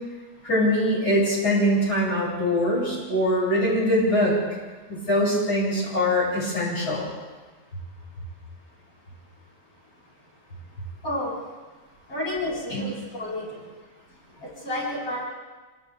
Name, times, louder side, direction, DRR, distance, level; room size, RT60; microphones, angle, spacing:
voice 1, 0.4-4.3 4.9-7.1 12.7-12.9, equal, 70° left, -7 dB, 8.3 m, -23 dB
voice 2, 12.1-13.7 14.4-15.2, left 1 dB, 55° left, -7 dB, 8.4 m, -30 dB
28.5 x 26.5 x 3.6 m, 1.3 s
omnidirectional pair, 1.8 m